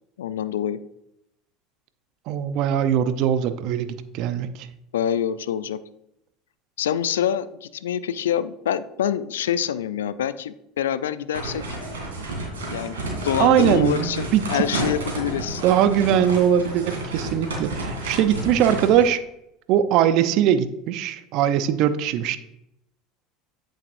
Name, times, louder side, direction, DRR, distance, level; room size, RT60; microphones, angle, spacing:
voice 1, 0.2-0.8 4.9-5.8 6.8-11.6 12.7-13.0 13.2-15.6, left 9 dB, 80° left, 15 dB, 0.3 m, -26 dB
voice 2, 2.3-4.7 13.4-14.6 15.6-19.2 19.7-22.4, right 9 dB, 60° right, 11 dB, 0.6 m, -21 dB
sound 1, 11.3-19.1, right 1 dB, 85° right, 2.6 m, -30 dB
8.4 x 7.6 x 2.6 m, 0.80 s
hypercardioid pair, 75°, 0 cm